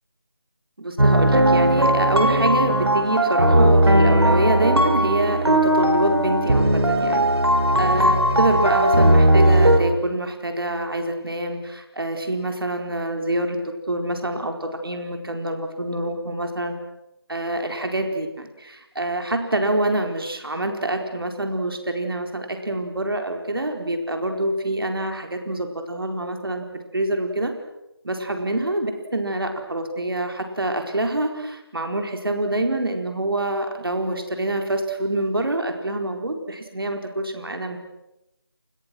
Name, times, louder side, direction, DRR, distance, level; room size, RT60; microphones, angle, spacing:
voice 1, 0.8-7.3 7.8-13.6 13.9-16.8 17.3-26.7 26.9-27.5 28.0-37.8, right 1 dB, 65° right, 4 dB, 4.5 m, -26 dB
sound 1, 1.0-9.8, right 1 dB, 85° right, 5.7 m, -17 dB
29.0 x 29.0 x 6.2 m, 0.89 s
figure-of-eight pair, 170°, 13 cm